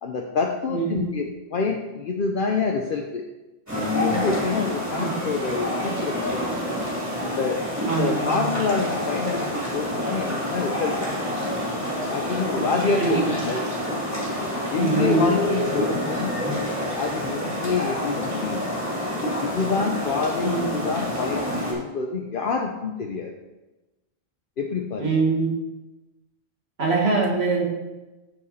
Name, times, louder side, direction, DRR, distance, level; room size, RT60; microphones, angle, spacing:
voice 1, 0.0-3.2 3.9-6.5 7.2-11.1 12.1-13.7 14.7-16.4 17.0-18.6 19.4-23.3 24.6-25.1, left 5 dB, 60° left, 2 dB, 0.9 m, -27 dB
voice 2, 0.7-1.1 5.0-5.1 7.9-8.5 13.0-13.1 14.8-15.2 20.4-20.7 25.0-25.5 26.8-27.6, right 4 dB, 85° right, -2 dB, 2.3 m, -23 dB
sound 1, 3.7-21.7, left 1 dB, 15° right, 2.9 m, -27 dB
13.5 x 4.5 x 4.2 m, 1.1 s
omnidirectional pair, 1.0 m